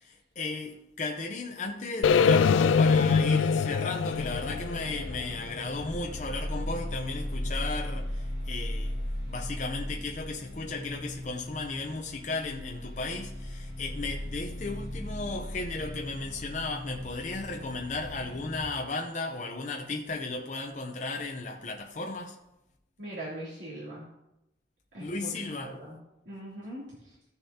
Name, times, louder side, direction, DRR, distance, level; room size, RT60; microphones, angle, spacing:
voice 1, 0.0-22.4 25.0-25.8, left 3 dB, 40° left, 0.7 m, -35 dB
sound 1, 2.0-6.1, left 5 dB, 85° left, 0.3 m, -24 dB
sound 2, 4.1-18.6, left 1 dB, 35° right, 2.7 m, -37 dB
voice 2, 23.0-24.0 24.9-26.0 26.2-26.9, right 1 dB, 70° right, 2.9 m, -41 dB
15.5 x 6.8 x 2.8 m
head